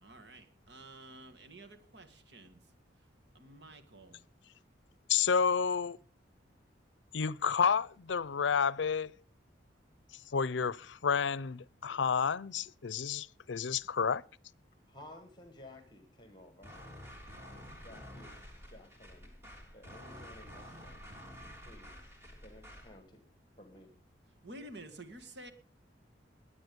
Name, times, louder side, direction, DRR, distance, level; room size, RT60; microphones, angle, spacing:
voice 1, 0.0-2.6 3.3-4.2 24.4-25.5, right 1 dB, 65° right, 1.8 m, -51 dB
voice 2, 5.1-6.0 7.1-9.1 10.3-14.2, left 6 dB, 80° left, 0.5 m, -30 dB
voice 3, 14.9-16.8 17.8-19.3 19.7-21.1 21.4-22.1 22.4-23.2 23.6-23.9, left 1 dB, 25° left, 1.5 m, -55 dB
sound 1, 16.6-23.0, equal, 15° right, 3.2 m, -50 dB
20.0 x 8.6 x 5.3 m
head